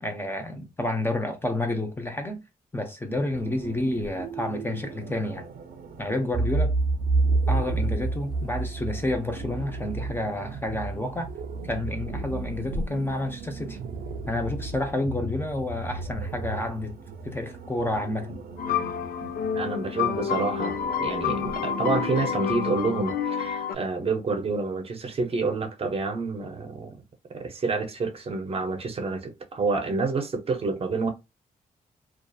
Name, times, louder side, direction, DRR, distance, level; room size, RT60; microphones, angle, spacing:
voice 1, 0.0-2.4 2.7-5.4 6.0-6.7 7.5-11.3 11.6-13.8 14.3-16.9 17.2-18.4, left 1 dB, 15° left, 0.5 m, -29 dB
sound 1, 3.3-22.3, right 3 dB, 85° right, 0.5 m, -32 dB
sound 2, 18.6-23.8, left 8 dB, 90° left, 0.4 m, -28 dB
voice 2, 19.5-27.0 27.3-31.1, right 3 dB, 40° right, 0.6 m, -28 dB
2.6 x 2.3 x 2.3 m
wide cardioid pair, 135°, 15 cm